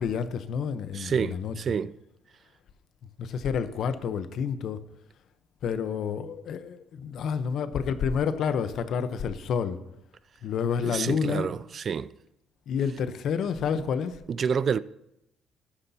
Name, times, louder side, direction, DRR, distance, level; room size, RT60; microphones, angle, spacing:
voice 1, 0.0-1.5 3.2-4.8 5.6-9.8 10.4-11.5 12.7-14.2, left 7 dB, 65° left, 0.8 m, -29 dB
voice 2, 0.9-1.9 10.8-12.1 13.7-13.8 14.3-14.8, right 6 dB, 45° right, 0.3 m, -28 dB
14.5 x 9.9 x 2.8 m
cardioid pair, 95°, 0 cm